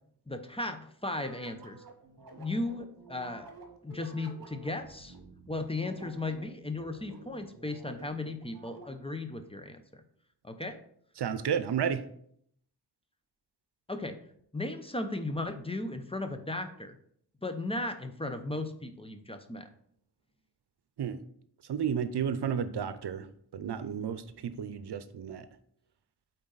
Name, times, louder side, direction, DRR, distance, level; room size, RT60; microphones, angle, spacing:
voice 1, 0.3-1.8 2.4-3.5 3.8-5.1 5.5-9.8 10.4-10.8 13.9-14.2 14.5-17.0 17.4-19.7, left 2 dB, 15° left, 7 dB, 0.6 m, -36 dB
sound 1, 1.1-9.2, right 2 dB, 60° right, 1.2 m, -51 dB
voice 2, 11.2-12.0 21.0-21.2 21.7-23.3 23.5-25.5, right 7 dB, 85° right, 12 dB, 0.6 m, -32 dB
8.6 x 4.0 x 4.0 m, 0.67 s
wide cardioid pair, 95°, 39 cm